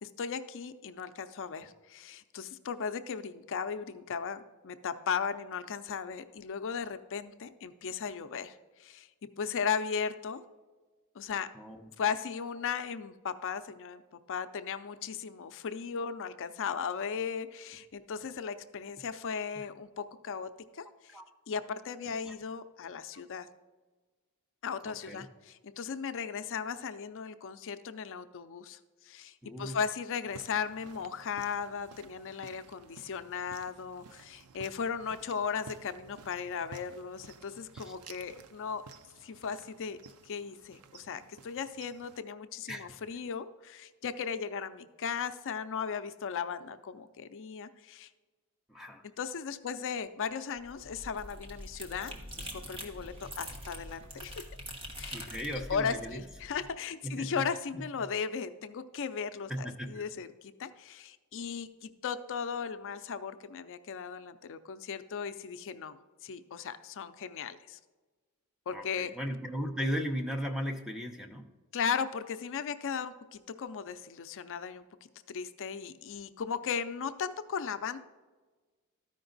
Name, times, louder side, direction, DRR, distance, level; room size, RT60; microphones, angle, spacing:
voice 1, 0.0-9.1 9.4-10.4 11.2-11.5 12.0-14.0 14.3-21.2 21.5-23.5 24.6-28.8 29.0-38.8 39.2-40.0 40.2-48.1 49.2-54.4 54.9-55.2 55.5-66.0 66.2-67.8 68.7-69.1 71.7-74.8 75.3-78.0, left 6 dB, 60° left, 11 dB, 0.5 m, -37 dB
voice 2, 11.5-11.9 19.6-19.7 21.1-21.2 22.2-22.3 24.8-25.2 29.4-29.8 37.8-38.0 42.7-42.9 48.7-49.0 55.1-56.2 57.0-57.4 57.7-57.8 59.5-60.0 68.7-71.5, equal, 5° right, 4 dB, 0.7 m, -37 dB
sound 1, 30.3-42.2, right 5 dB, 80° right, 0.5 m, -54 dB
sound 2, 50.6-56.7, equal, 25° right, 1.2 m, -44 dB
13.0 x 5.1 x 3.9 m, 1.3 s
head